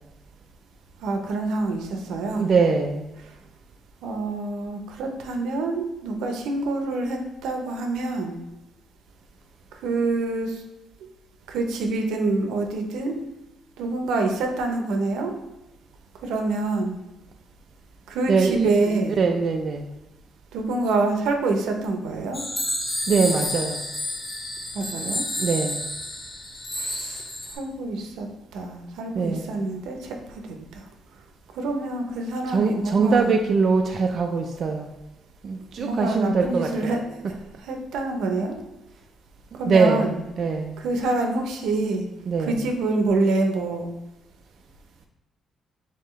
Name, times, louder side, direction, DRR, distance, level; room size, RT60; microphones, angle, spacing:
voice 1, 1.0-2.4 3.2-3.3 4.0-8.4 9.8-10.6 11.5-13.2 13.8-15.3 16.2-17.0 18.1-19.2 20.5-22.4 24.7-25.2 26.8-27.2 27.5-28.3 28.5-30.8 31.5-33.3 35.8-37.4 37.6-38.6 39.6-40.2 40.8-42.1 42.4-43.9, right 2 dB, 85° right, 3 dB, 0.7 m, -26 dB
voice 2, 2.3-3.1 18.3-19.9 23.1-23.8 25.4-25.8 29.1-29.6 32.5-34.9 35.4-36.9 39.5-40.1 40.4-40.8 42.3-42.6, right 4 dB, 55° right, 3 dB, 0.4 m, -22 dB
sound 1, 22.3-27.5, left 1 dB, 40° left, 1.5 m, -30 dB
4.6 x 3.6 x 3.1 m, 0.93 s
cardioid pair, 90°, 0 cm